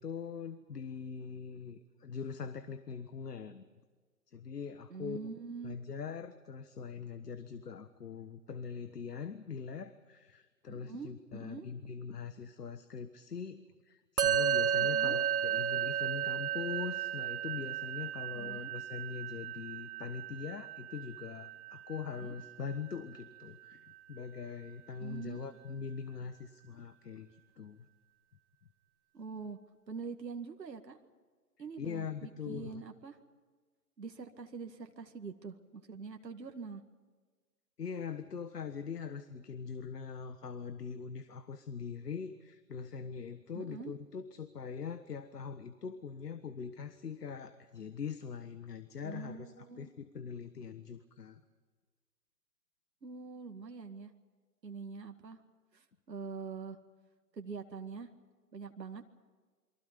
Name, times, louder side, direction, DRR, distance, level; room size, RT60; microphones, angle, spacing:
voice 1, 0.0-3.6 4.3-5.2 5.6-27.3 27.6-27.8 31.8-32.8 37.8-51.4, left 6 dB, 70° left, 11 dB, 1.5 m, -42 dB
voice 2, 4.9-5.8 10.7-11.7 14.8-15.2 18.3-18.7 22.1-22.4 25.0-25.4 29.1-29.6 29.9-31.0 31.6-33.2 34.0-36.8 43.5-43.9 49.0-49.9 53.0-54.1 54.6-55.4 55.7-56.8 57.3-58.1 58.5-59.0, right 5 dB, 80° right, 5 dB, 2.2 m, -44 dB
Musical instrument, 14.2-23.7, right 9 dB, 60° right, 1.9 m, -34 dB
28.5 x 23.5 x 5.3 m, 1.4 s
hypercardioid pair, 150°, 49 cm